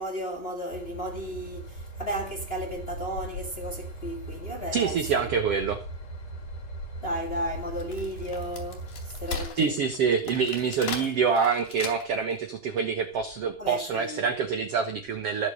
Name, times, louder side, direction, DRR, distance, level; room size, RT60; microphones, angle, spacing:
voice 1, 0.0-5.3 7.0-9.8 13.6-14.3, right 1 dB, 20° left, 1.9 m, -34 dB
Train / Engine, 0.7-9.4, right 2 dB, 50° left, 3.3 m, -39 dB
voice 2, 4.7-5.8 9.6-15.5, right 6 dB, 65° right, 1.5 m, -26 dB
Wood, 7.6-12.3, left 5 dB, 70° left, 4.1 m, -38 dB
14.0 x 6.8 x 6.6 m
omnidirectional pair, 4.2 m